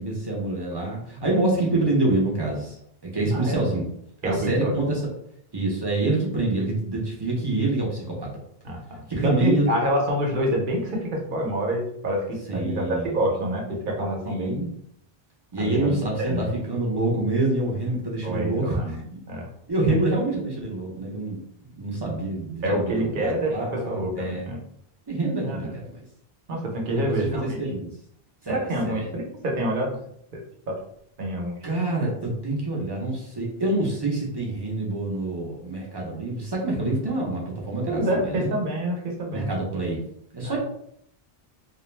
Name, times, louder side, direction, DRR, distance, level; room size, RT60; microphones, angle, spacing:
voice 1, 0.0-2.8 3.0-3.9 4.2-5.0 5.5-8.3 9.1-9.9 12.5-13.2 14.3-14.7 15.5-18.8 19.1-19.2 19.7-21.4 21.8-24.5 25.1-26.0 26.9-27.9 28.4-29.1 31.6-38.5 39.3-40.0 40.3-40.6, right 2 dB, 30° right, -3 dB, 0.5 m, -26 dB
voice 2, 4.2-4.8 8.6-14.7 15.6-15.9 16.2-16.5 18.2-19.0 19.3-19.5 22.6-24.6 25.4-25.7 26.5-27.6 28.5-30.0 30.3-30.4 30.7-30.8 31.2-31.6 37.9-39.6 40.4-40.6, equal, 55° right, 0 dB, 0.8 m, -27 dB
2.3 x 2.1 x 3.1 m, 0.70 s
omnidirectional pair, 1.0 m